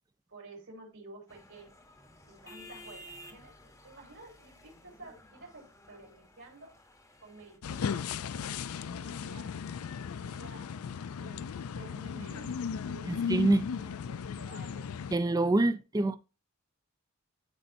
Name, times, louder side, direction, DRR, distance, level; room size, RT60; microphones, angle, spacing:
voice 1, 0.3-1.7 2.2-6.8 7.2-8.2 8.6-10.7 11.2-14.9 15.7-16.1, right 2 dB, 75° right, 3.5 m, -52 dB
sound 1, 1.3-7.6, equal, 15° left, 0.9 m, -54 dB
sound 2, 7.6-15.2, left 7 dB, 85° left, 0.4 m, -36 dB
voice 2, 13.1-13.7 15.1-16.2, right 2 dB, 15° right, 0.4 m, -26 dB
12.5 x 4.3 x 2.6 m
head